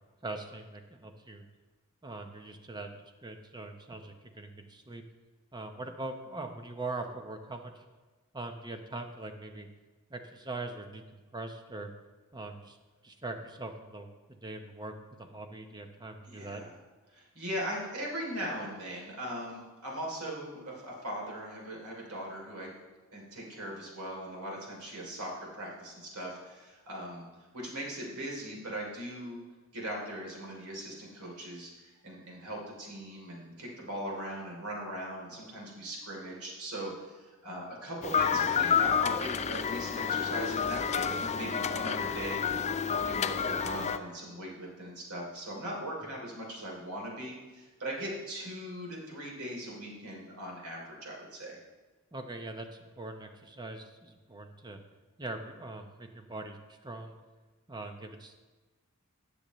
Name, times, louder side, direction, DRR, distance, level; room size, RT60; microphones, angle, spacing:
voice 1, 0.2-1.4 2.0-2.9 3.2-5.0 5.5-7.8 8.3-9.7 10.1-11.9 12.3-12.8 13.0-16.6 52.1-54.8 55.2-57.2 57.7-58.4, right 2 dB, 20° right, 6 dB, 0.8 m, -42 dB
voice 2, 16.3-16.7 17.1-22.7 23.1-27.2 27.5-29.4 29.7-51.6, equal, 80° right, -2 dB, 3.1 m, -39 dB
sound 1, 38.0-44.0, left 7 dB, 30° left, 0.4 m, -29 dB
17.0 x 6.9 x 3.1 m, 1.3 s
head